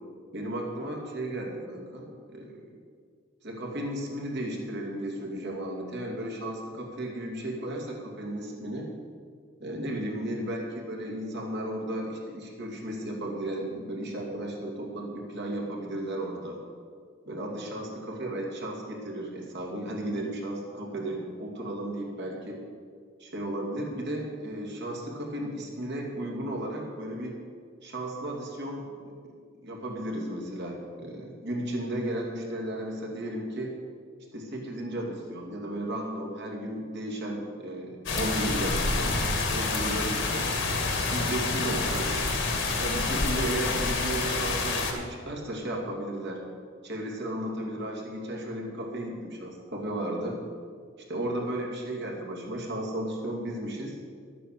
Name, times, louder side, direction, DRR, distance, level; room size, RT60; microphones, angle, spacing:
voice 1, 0.3-2.7 3.4-8.9 9.6-16.6 17.3-22.6 23.2-27.4 27.8-29.1 29.6-33.7 34.3-39.2 39.5-40.5 41.1-42.2 42.7-46.4 46.8-50.4 51.1-53.9, right 1 dB, 60° right, -1 dB, 2.5 m, -34 dB
sound 1, 38.1-44.9, left 3 dB, 65° left, 1.9 m, -28 dB
11.5 x 8.8 x 6.7 m, 2.1 s
head